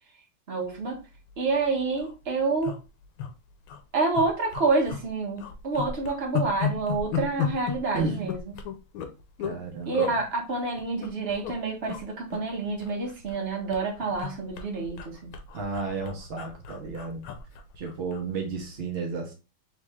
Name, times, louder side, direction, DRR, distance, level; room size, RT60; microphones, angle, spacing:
voice 1, 0.5-1.0 1.4-2.7 3.9-8.4 9.9-15.3, right 3 dB, 45° right, 0 dB, 0.8 m, -28 dB
sound 1, 1.2-1.3 1.6-1.7 1.9-2.1 2.6-3.3 3.6-3.8 4.1-5.1 5.4-9.6 9.9-10.2 10.8-11.5 11.8-12.0 12.3-13.4 13.7-18.3 18.6-18.8, left 7 dB, 75° left, 1.4 m, -34 dB
voice 2, 7.9-8.3 9.4-10.1 15.5-17.2 17.8-19.3, right 4 dB, 80° right, 1 dB, 0.5 m, -32 dB
3.5 x 3.2 x 3.4 m, 0.29 s
omnidirectional pair, 2.3 m